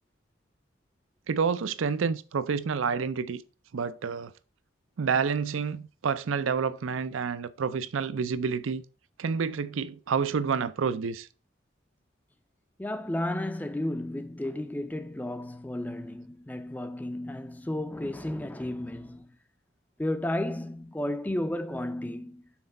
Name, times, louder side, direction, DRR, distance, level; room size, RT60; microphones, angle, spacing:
voice 1, 1.3-3.4 3.7-4.3 5.0-8.8 9.2-11.3, right 6 dB, 80° right, 0.5 m, -29 dB
voice 2, 12.8-19.3 20.0-22.4, left 1 dB, 10° left, 0.3 m, -33 dB
5.9 x 4.2 x 5.3 m
head